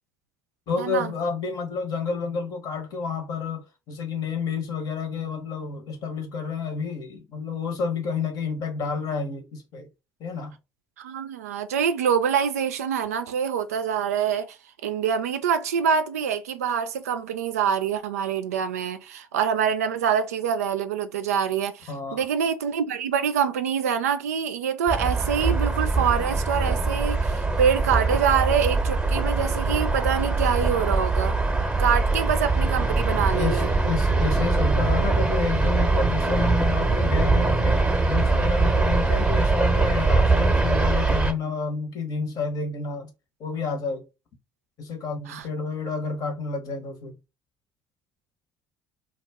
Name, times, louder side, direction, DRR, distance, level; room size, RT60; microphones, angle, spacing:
voice 1, 0.7-9.9 10.2-10.6 21.9-22.2 33.3-43.1 43.4-44.1 44.8-47.2, left 5 dB, 55° left, 0.9 m, -30 dB
voice 2, 11.0-14.6 14.8-31.4 31.8-33.7 45.3-45.4, right 7 dB, 85° right, 0.3 m, -25 dB
sound 1, 24.9-41.3, right 3 dB, 15° right, 0.7 m, -22 dB
2.2 x 2.1 x 3.4 m
hypercardioid pair, 60°, 8 cm